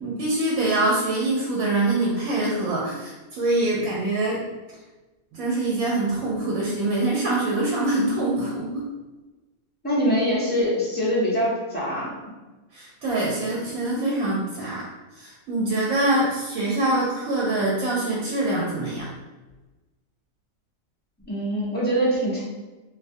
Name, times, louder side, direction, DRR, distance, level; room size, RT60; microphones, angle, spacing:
voice 1, 0.0-4.4 5.3-8.9 12.7-14.8 15.2-19.1, right 2 dB, 80° right, -5 dB, 1.0 m, -24 dB
voice 2, 9.8-12.3 21.3-22.4, equal, 10° left, -8 dB, 0.5 m, -24 dB
2.5 x 2.2 x 2.6 m, 1.2 s
omnidirectional pair, 1.4 m